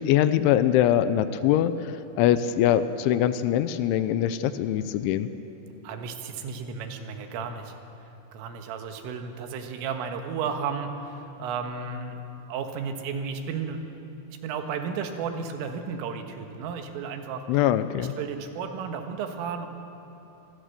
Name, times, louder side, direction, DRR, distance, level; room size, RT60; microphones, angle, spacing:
voice 1, 0.0-5.3 17.5-18.1, left 11 dB, 80° left, 12 dB, 3.0 m, -23 dB
voice 2, 5.8-7.7 8.3-12.2 12.5-13.8 14.4-17.4 18.0-19.7, right 6 dB, 85° right, 5 dB, 4.1 m, -33 dB
27.5 x 21.5 x 6.8 m, 2.9 s
omnidirectional pair, 5.7 m